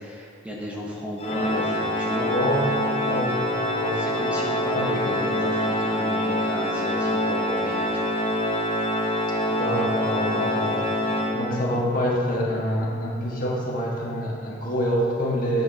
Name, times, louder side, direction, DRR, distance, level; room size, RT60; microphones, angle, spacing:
voice 1, 0.0-2.3 3.9-8.0, equal, 5° right, -4 dB, 0.8 m, -34 dB
Organ, 1.2-11.9, left 1 dB, 30° left, 0.7 m, -25 dB
voice 2, 2.3-3.5 3.7-4.1 4.7-4.9 9.5-11.0 11.3-15.6, equal, 45° left, -4 dB, 1.6 m, -26 dB
9.6 x 8.5 x 2.8 m, 2.3 s
head